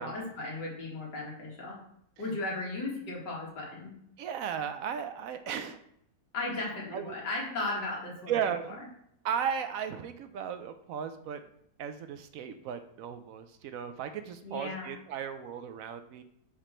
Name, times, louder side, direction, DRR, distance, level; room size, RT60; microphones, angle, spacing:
voice 1, 0.0-1.8 2.2-3.9 6.3-8.3 14.4-15.0, left 2 dB, 85° left, -3 dB, 2.4 m, -36 dB
voice 2, 4.2-5.8 6.9-7.1 8.3-8.9 9.2-11.4 11.8-16.2, right 8 dB, 70° right, 9 dB, 0.8 m, -35 dB
5.1 x 5.0 x 4.3 m, 0.73 s
omnidirectional pair, 1.8 m